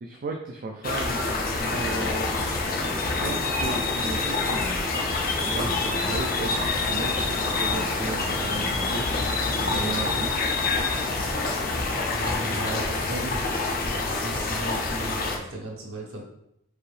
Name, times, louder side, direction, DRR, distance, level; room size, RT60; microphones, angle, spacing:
voice 1, 0.0-1.3 1.6-2.5 3.2-4.8 5.4-9.3 9.6-10.3, right 3 dB, 40° right, 2 dB, 0.3 m, -34 dB
sound 1, 0.8-15.4, left 3 dB, 45° left, 0.5 m, -27 dB
Truck, 1.6-12.6, left 1 dB, 65° left, 1.4 m, -39 dB
voice 2, 12.1-13.3 14.0-16.2, right 2 dB, 85° right, -1 dB, 1.0 m, -36 dB
4.7 x 2.7 x 3.2 m, 0.79 s
head